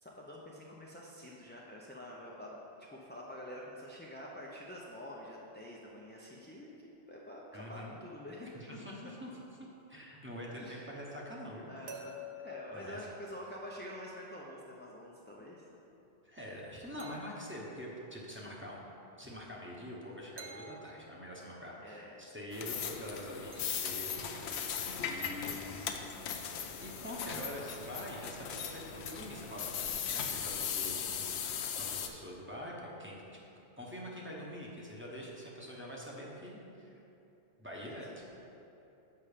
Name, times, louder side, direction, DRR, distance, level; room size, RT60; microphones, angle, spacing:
voice 1, 0.0-8.8 10.5-10.9 11.7-15.6 21.8-22.2 25.4-25.9 37.9-38.0, left 1 dB, 15° left, -4 dB, 0.4 m, -47 dB
voice 2, 7.5-8.0 8.5-9.3 9.6-11.7 12.7-13.0 16.2-18.8 19.2-25.9 26.8-33.4 33.8-37.0 37.6-38.2, equal, 10° right, -4 dB, 0.9 m, -45 dB
sound 1, 10.8-13.9 17.0-17.8 20.4-21.6 23.5-24.6 25.4-25.7 26.4-27.1 28.0-29.5, left 1 dB, 80° right, 1.0 m, -52 dB
sound 2, 22.5-32.1, left 7 dB, 80° left, 0.9 m, -38 dB
7.1 x 5.5 x 5.0 m, 3.0 s
omnidirectional pair, 1.1 m